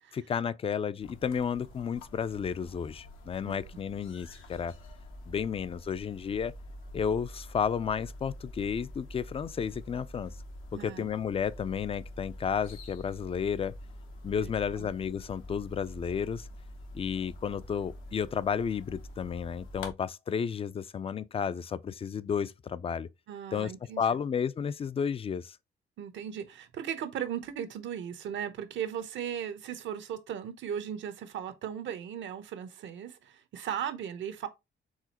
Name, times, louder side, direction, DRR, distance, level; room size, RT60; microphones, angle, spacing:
voice 1, 0.1-4.7 5.3-6.5 6.9-10.3 10.7-13.7 14.2-16.5 16.9-23.1 23.5-23.7 24.0-25.6, left 7 dB, 30° left, 0.3 m, -32 dB
sound 1, 1.0-19.9, left 1 dB, 85° left, 1.0 m, -46 dB
voice 2, 10.7-11.2 14.3-14.5 14.8-14.9 23.3-24.2 26.0-34.5, right 9 dB, 70° right, 0.8 m, -37 dB
4.8 x 3.6 x 2.9 m
cardioid pair, 90°, 20 cm